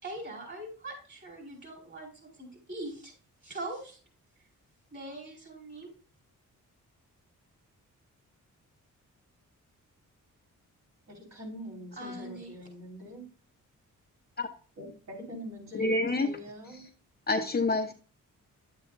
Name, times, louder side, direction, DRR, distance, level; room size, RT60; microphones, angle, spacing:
voice 1, 0.0-3.1 3.4-4.0 4.9-5.9 12.0-12.5, right 1 dB, 35° right, 0 dB, 4.9 m, -41 dB
voice 2, 11.1-13.3 14.8-16.8, equal, 55° right, -3 dB, 5.0 m, -43 dB
voice 3, 15.7-16.3 17.3-17.9, left 2 dB, 30° left, 4 dB, 0.9 m, -27 dB
10.5 x 8.0 x 2.7 m, 0.37 s
cardioid pair, 100°, 32 cm